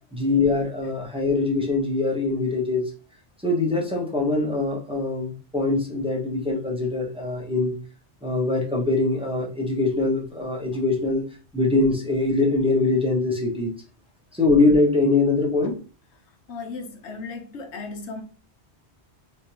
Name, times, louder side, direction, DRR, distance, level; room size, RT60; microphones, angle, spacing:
voice 1, 0.1-2.9 3.4-7.7 8.2-11.2 11.5-13.7 14.3-15.8, left 3 dB, 5° right, 1.0 m, -23 dB
voice 2, 16.5-18.2, left 4 dB, 80° left, 1.1 m, -36 dB
3.4 x 3.0 x 2.8 m
omnidirectional pair, 1.2 m